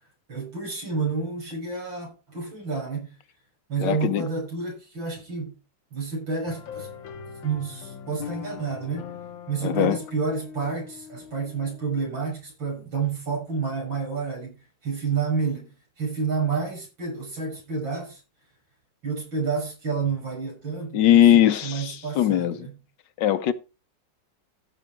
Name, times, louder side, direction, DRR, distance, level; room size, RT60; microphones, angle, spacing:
voice 1, 0.3-3.2 3.7-5.5 5.9-6.9 7.4-9.1 9.5-18.2 19.0-22.8, right 5 dB, 80° right, 7.1 m, -29 dB
voice 2, 3.8-4.2 9.6-10.0 20.9-22.7 23.2-23.5, left 11 dB, 70° left, 1.4 m, -20 dB
sound 1, 6.5-12.1, left 8 dB, 90° left, 1.9 m, -41 dB
15.0 x 6.1 x 4.5 m
omnidirectional pair, 2.1 m